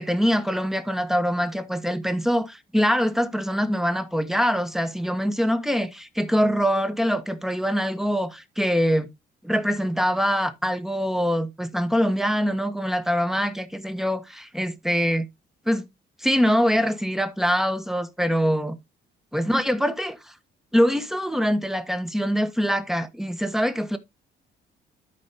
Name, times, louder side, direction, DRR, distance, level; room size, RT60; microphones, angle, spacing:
voice 1, 0.0-9.1 9.4-15.3 15.6-15.8 16.2-18.7 19.3-20.3 20.7-24.0, equal, ahead, 1.4 m, -24 dB
13.0 x 5.3 x 2.9 m
cardioid pair, 90°, 20 cm